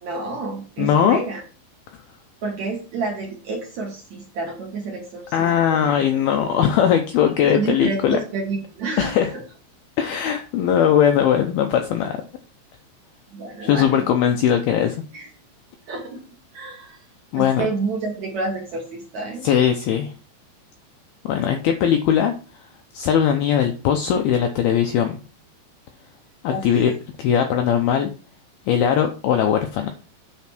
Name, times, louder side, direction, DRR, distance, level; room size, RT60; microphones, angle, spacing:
voice 1, 0.0-1.4 2.4-5.9 7.5-9.4 13.3-14.1 15.1-15.3 15.9-16.2 16.5-17.0 17.3-19.5 26.5-26.9, right 3 dB, 55° right, -1 dB, 2.2 m, -29 dB
voice 2, 0.8-1.2 5.3-8.2 9.0-9.3 10.0-12.2 13.6-15.0 17.3-17.7 19.4-20.1 21.2-22.3 22.9-25.2 26.4-26.9 27.2-28.1 28.7-29.9, left 9 dB, 90° left, 5 dB, 2.2 m, -19 dB
9.4 x 4.3 x 6.0 m, 0.36 s
omnidirectional pair, 5.4 m